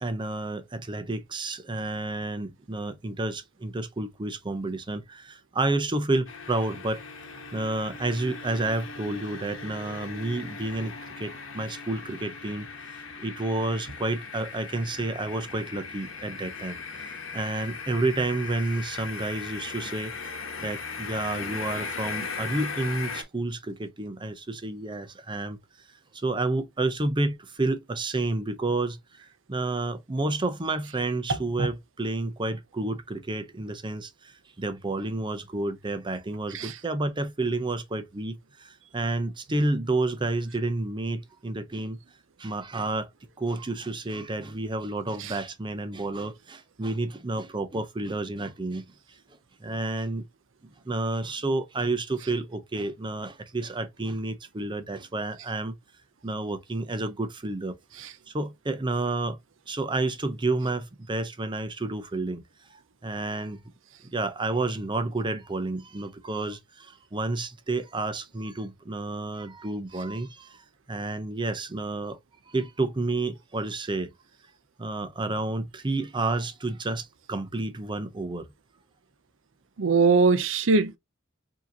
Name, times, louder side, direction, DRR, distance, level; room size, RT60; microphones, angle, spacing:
voice 1, 0.0-7.0 7.5-12.7 13.2-20.1 20.6-25.6 26.1-29.0 29.5-42.0 42.4-43.1 43.4-48.8 49.6-50.2 50.8-55.7 56.2-57.7 58.3-59.4 59.7-62.4 62.7-63.6 64.1-72.2 72.5-74.1 74.8-78.5, right 2 dB, 25° right, 0.6 m, -30 dB
sound 1, 6.3-23.2, left 4 dB, 75° left, 1.1 m, -38 dB
voice 2, 79.8-81.0, right 4 dB, 70° right, 0.6 m, -21 dB
4.8 x 2.8 x 2.7 m
head